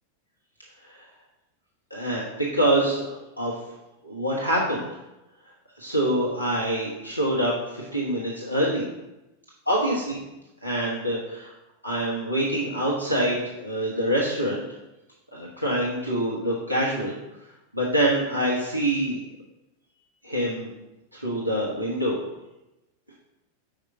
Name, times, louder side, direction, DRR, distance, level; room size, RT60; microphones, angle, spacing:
voice 1, 1.9-3.5 4.0-4.9 5.8-8.9 9.7-10.2 10.6-11.5 11.8-14.6 15.3-17.1 17.7-19.2 20.2-20.7 21.1-22.2, right 1 dB, 90° left, -4 dB, 1.0 m, -25 dB
5.0 x 4.9 x 4.6 m, 0.97 s
figure-of-eight pair, 90°, 0 cm